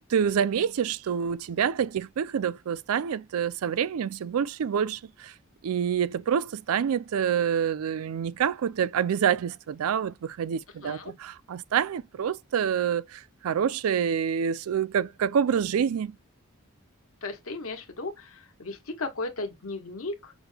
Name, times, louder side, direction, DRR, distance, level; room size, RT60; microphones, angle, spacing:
voice 1, 0.0-5.3 5.6-16.2, right 8 dB, 80° right, 0.4 m, -27 dB
voice 2, 10.8-11.1 17.2-20.3, left 3 dB, 75° left, 1.2 m, -35 dB
6.1 x 2.2 x 3.2 m
head